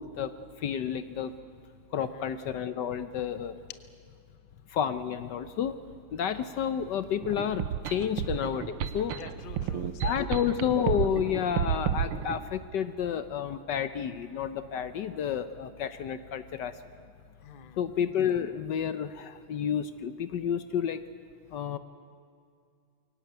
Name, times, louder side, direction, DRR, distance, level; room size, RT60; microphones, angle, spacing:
voice 1, 0.0-1.3 1.9-3.6 4.7-5.8 6.1-9.2 9.7-16.8 17.8-21.0 21.5-21.8, left 8 dB, 65° left, 11 dB, 1.2 m, -30 dB
sound 1, 7.2-12.4, right 9 dB, 85° right, 1.8 m, -31 dB
voice 2, 9.1-10.3 17.4-17.8, left 8 dB, 40° left, 9 dB, 0.7 m, -48 dB
23.0 x 17.5 x 9.3 m, 2.3 s
omnidirectional pair, 2.3 m